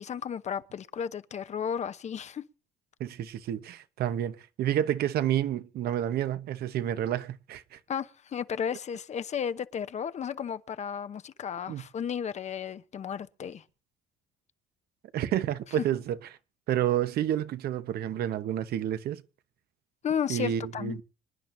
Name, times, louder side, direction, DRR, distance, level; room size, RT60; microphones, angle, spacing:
voice 1, 0.0-2.4 7.9-13.6 20.0-21.0, left 8 dB, 40° left, 0.9 m, -33 dB
voice 2, 3.0-7.8 11.7-11.8 15.1-16.2 16.7-19.2 20.3-20.9, right 11 dB, 65° right, 1.1 m, -29 dB
26.0 x 10.5 x 2.7 m
cardioid pair, 110°, 17 cm